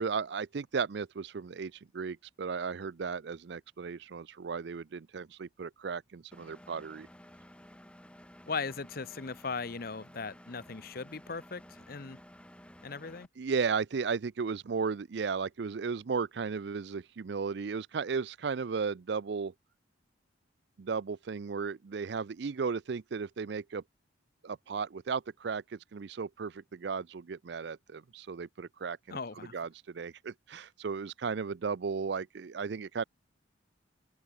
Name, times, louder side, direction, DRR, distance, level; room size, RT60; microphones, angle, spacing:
voice 1, 0.0-7.1 13.4-19.5 20.8-23.8 24.4-29.2 29.5-33.0, right 5 dB, 60° right, 0.4 m, -35 dB
Engine, 6.3-13.3, equal, 5° left, 4.7 m, -54 dB
voice 2, 8.5-12.2 12.8-13.3 29.1-29.6, left 4 dB, 50° left, 0.8 m, -38 dB
open air
head